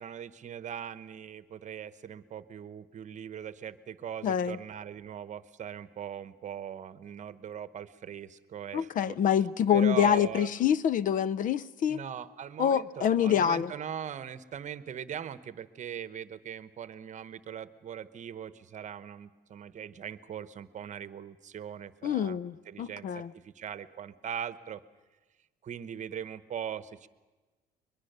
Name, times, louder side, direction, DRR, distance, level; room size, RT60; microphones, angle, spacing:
voice 1, 0.0-9.2 9.7-10.5 11.9-24.8 25.6-27.1, right 9 dB, 45° right, 14 dB, 1.0 m, -40 dB
voice 2, 4.2-4.6 8.7-12.0 12.6-13.7 22.0-23.3, left 9 dB, 50° left, 20 dB, 0.6 m, -26 dB
22.5 x 21.5 x 6.8 m, 1.2 s
cardioid pair, 110°, 17 cm